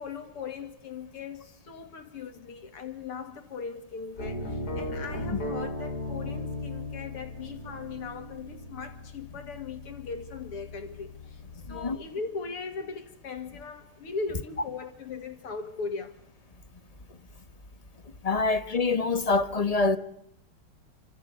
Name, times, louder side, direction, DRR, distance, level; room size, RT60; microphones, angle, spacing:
voice 1, 0.0-11.4 11.7-16.2, left 5 dB, 85° left, 3.5 m, -39 dB
sound 1, 4.2-12.1, left 1 dB, 45° left, 4.3 m, -37 dB
voice 2, 18.2-20.0, left 3 dB, 20° left, 1.1 m, -25 dB
28.5 x 26.0 x 6.9 m
omnidirectional pair, 2.4 m